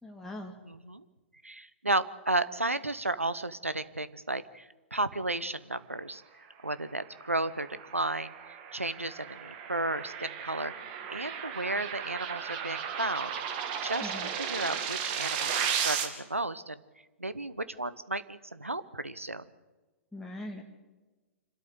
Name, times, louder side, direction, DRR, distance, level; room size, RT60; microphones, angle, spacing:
voice 1, 0.0-0.5 14.0-14.3 20.1-20.6, left 1 dB, 5° left, -1 dB, 2.2 m, -41 dB
voice 2, 0.6-1.0 1.4-6.2 6.6-7.7 7.9-8.3 8.7-13.3 13.8-16.8 17.2-19.5, right 2 dB, 90° right, 15 dB, 0.9 m, -33 dB
sound 1, 7.2-16.1, right 8 dB, 45° right, 2.5 m, -35 dB
26.5 x 13.0 x 8.2 m, 1.2 s
figure-of-eight pair, 105°, 7 cm